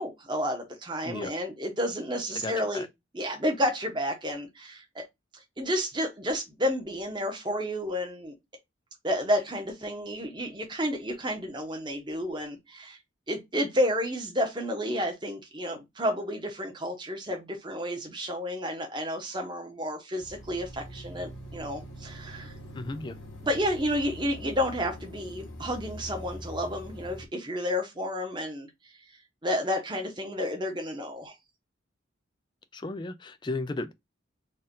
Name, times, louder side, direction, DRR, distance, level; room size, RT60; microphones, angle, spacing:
voice 1, 0.0-2.8 3.1-5.0 5.6-8.3 9.0-13.0 13.3-22.5 23.4-28.7 29.4-31.3, equal, 25° right, 1.1 m, -31 dB
voice 2, 2.4-2.9 22.7-23.2 32.7-33.9, left 2 dB, 25° left, 0.3 m, -35 dB
sound 1, 20.2-27.3, equal, 80° left, 1.5 m, -43 dB
4.2 x 2.5 x 3.7 m
head